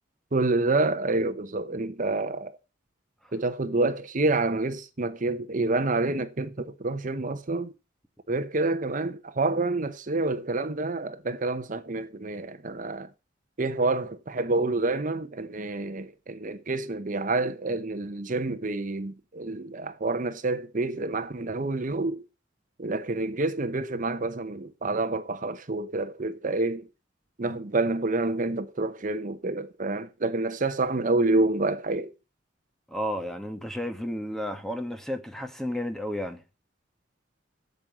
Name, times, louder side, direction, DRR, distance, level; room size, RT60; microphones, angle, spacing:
voice 1, 0.3-2.6 3.3-7.7 8.3-13.1 13.6-22.2 22.8-26.9 27.4-32.1, right 2 dB, 45° right, 0.9 m, -28 dB
voice 2, 32.9-36.4, equal, ahead, 1.3 m, -32 dB
8.6 x 7.6 x 7.3 m
head